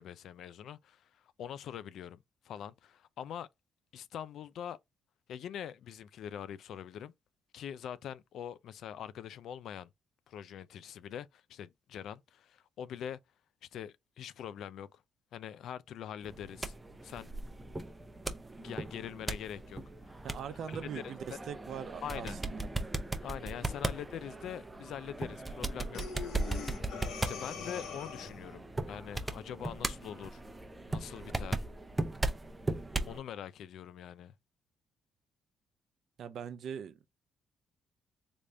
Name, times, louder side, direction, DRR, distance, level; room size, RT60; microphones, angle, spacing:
voice 1, 0.0-3.5 3.9-4.8 5.3-7.1 7.5-9.9 10.3-13.2 13.7-15.0 15.3-16.7 17.0-17.3 18.6-19.8 20.5-21.1 22.0-22.4 23.2-26.4 27.2-30.4 30.9-31.6 33.1-34.3, left 9 dB, 75° left, 0.3 m, -43 dB
sound 1, 16.2-33.2, right 2 dB, 15° right, 0.6 m, -38 dB
voice 2, 20.2-22.6 36.2-37.1, right 8 dB, 65° right, 0.5 m, -41 dB
Breathing, 25.9-28.5, left 6 dB, 90° left, 0.7 m, -43 dB
3.4 x 2.5 x 3.2 m
cardioid pair, 90°, 0 cm